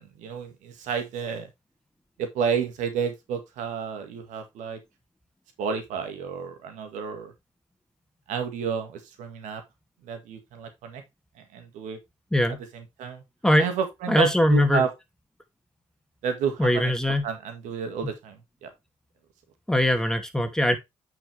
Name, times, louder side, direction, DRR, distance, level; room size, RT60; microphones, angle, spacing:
voice 1, 0.0-1.5 2.2-4.8 5.6-7.3 8.3-9.6 10.0-11.0 11.4-12.0 12.7-13.2 13.6-14.9 16.2-16.9 17.2-18.7, right 7 dB, 75° right, 1.9 m, -31 dB
voice 2, 14.1-14.8 16.6-17.2 18.0-18.1 19.7-20.8, left 1 dB, 5° left, 2.3 m, -21 dB
8.9 x 5.7 x 3.3 m
hypercardioid pair, 45°, 13 cm